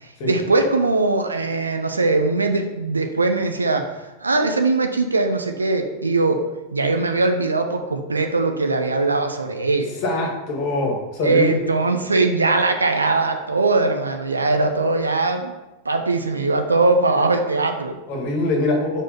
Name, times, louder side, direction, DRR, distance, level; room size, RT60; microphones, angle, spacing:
voice 1, 0.2-3.9 4.2-6.4 6.7-10.0 11.2-15.5 15.8-17.9, right 3 dB, 80° right, 5 dB, 0.7 m, -20 dB
voice 2, 10.0-11.5 18.1-19.0, left 2 dB, 45° left, 0 dB, 1.7 m, -23 dB
5.0 x 4.4 x 5.4 m, 1.0 s
figure-of-eight pair, 90°, 0 cm